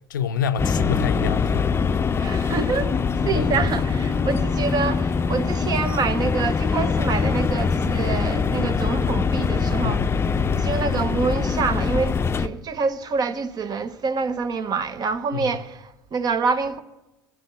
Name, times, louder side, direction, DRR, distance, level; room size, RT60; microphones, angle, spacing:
voice 1, 0.1-1.7 3.3-3.5 9.8-10.1 15.3-15.5, left 7 dB, 90° left, 0.5 m, -27 dB
sound 1, 0.6-12.5, left 5 dB, 25° left, 0.6 m, -23 dB
voice 2, 2.2-10.1 10.6-16.8, right 5 dB, 40° right, 1.0 m, -26 dB
12.0 x 6.4 x 9.4 m
hypercardioid pair, 75°, 10 cm